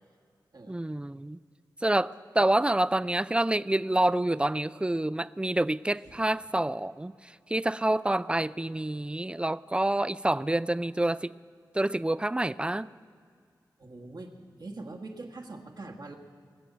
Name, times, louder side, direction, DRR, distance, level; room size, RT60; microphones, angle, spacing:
voice 1, 0.7-1.4 1.8-11.3 11.7-12.9, right 1 dB, 15° right, 17 dB, 0.3 m, -27 dB
voice 2, 13.8-14.3 14.6-16.2, right 2 dB, 60° right, 1 dB, 1.6 m, -43 dB
20.5 x 7.1 x 9.1 m, 2.2 s
cardioid pair, 50°, 8 cm